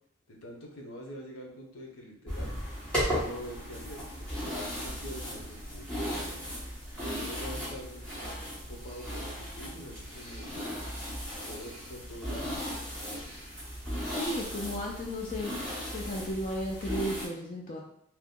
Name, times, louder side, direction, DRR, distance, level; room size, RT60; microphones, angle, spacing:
voice 1, 0.3-2.6 3.2-5.9 7.2-10.6 11.4-12.5, equal, 85° left, -1 dB, 0.8 m, -45 dB
sound 1, 2.3-17.3, equal, 5° left, 1.0 m, -36 dB
voice 2, 14.0-15.5 15.9-17.8, equal, 35° left, -2 dB, 0.4 m, -34 dB
2.9 x 2.2 x 3.6 m, 0.72 s
head